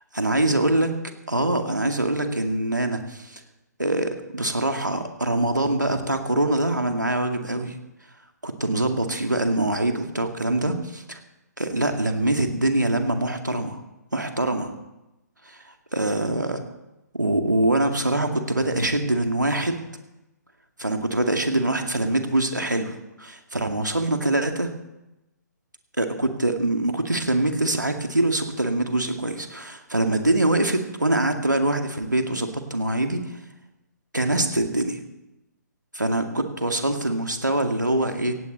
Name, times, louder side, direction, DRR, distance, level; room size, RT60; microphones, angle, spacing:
voice 1, 0.2-0.9 1.3-3.4 3.8-7.8 8.4-11.2 11.6-13.8 14.1-14.7 15.5-15.6 15.9-16.6 17.1-19.8 20.8-24.7 26.0-33.2 34.1-35.0 35.9-38.3, right 1 dB, 90° right, 5 dB, 2.1 m, -24 dB
17.5 x 16.0 x 4.0 m, 0.98 s
figure-of-eight pair, 135°, 10 cm